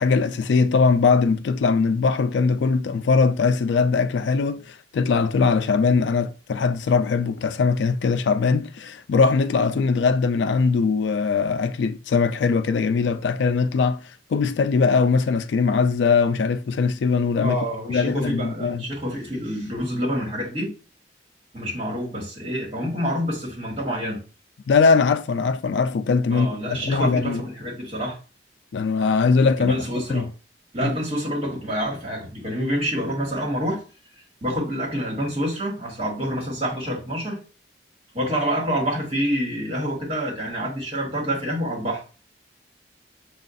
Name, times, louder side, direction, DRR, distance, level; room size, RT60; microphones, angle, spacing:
voice 1, 0.0-14.0 14.3-17.6 17.9-18.9 24.7-27.4 28.7-29.8 30.1-30.3 30.8-30.9, left 5 dB, 75° left, 0.4 m, -21 dB
voice 2, 17.4-20.7 21.5-24.2 26.3-28.2 29.6-30.3 30.7-33.8 34.4-37.4 38.1-42.0, equal, 35° right, 1.7 m, -27 dB
6.3 x 2.4 x 2.5 m
head